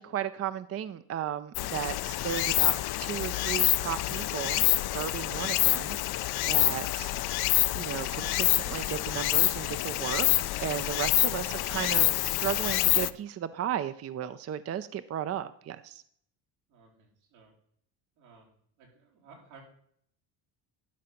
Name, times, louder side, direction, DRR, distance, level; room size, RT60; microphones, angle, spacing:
voice 1, 0.0-6.0 6.4-7.1 7.8-10.3 10.6-16.0, right 10 dB, 35° right, 13 dB, 0.5 m, -35 dB
Stream, 1.6-13.1, left 16 dB, 55° left, 0.6 m, -27 dB
voice 2, 16.7-17.5 18.2-19.6, right 5 dB, 85° right, -1 dB, 3.7 m, -56 dB
11.5 x 5.1 x 5.7 m, 0.64 s
cardioid pair, 95°, 46 cm